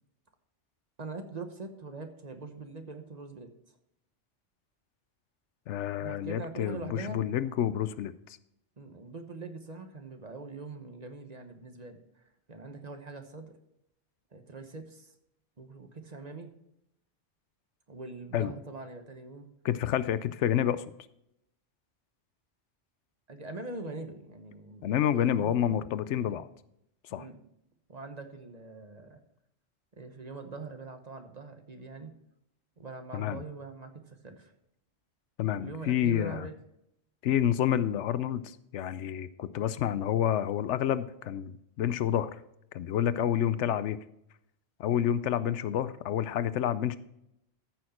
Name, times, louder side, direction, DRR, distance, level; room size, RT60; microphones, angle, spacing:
voice 1, 1.0-3.5 6.0-7.2 8.8-13.5 14.3-15.1 15.6-16.5 17.9-19.5 23.3-25.8 26.3-26.4 27.2-27.4 27.9-29.2 30.0-32.1 32.8-34.5 35.6-36.6, right 3 dB, 35° right, 6 dB, 1.1 m, -43 dB
voice 2, 5.7-8.1 18.3-18.5 19.6-20.8 24.8-26.5 27.1-27.2 33.1-33.4 35.4-36.5 37.2-42.3 42.7-44.0 44.8-47.0, left 10 dB, 80° left, 14 dB, 0.9 m, -29 dB
14.0 x 6.4 x 4.2 m, 0.79 s
omnidirectional pair, 1.2 m